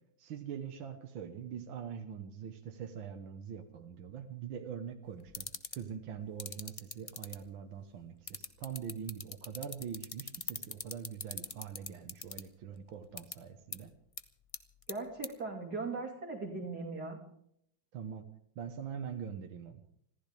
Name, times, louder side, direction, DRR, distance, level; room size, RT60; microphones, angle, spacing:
voice 1, 0.2-13.9 17.9-18.3 18.6-19.8, right 8 dB, 70° right, 4 dB, 1.9 m, -43 dB
sound 1, 5.3-5.8 6.4-7.3 8.3-12.4 13.2-13.3 13.7-13.8 14.2-14.3 14.5-14.9 15.2-15.3, left 4 dB, 50° left, 0.4 m, -39 dB
voice 2, 14.9-17.2, right 3 dB, 50° right, 0 dB, 3.1 m, -39 dB
26.0 x 15.0 x 3.5 m, 0.70 s
omnidirectional pair, 2.3 m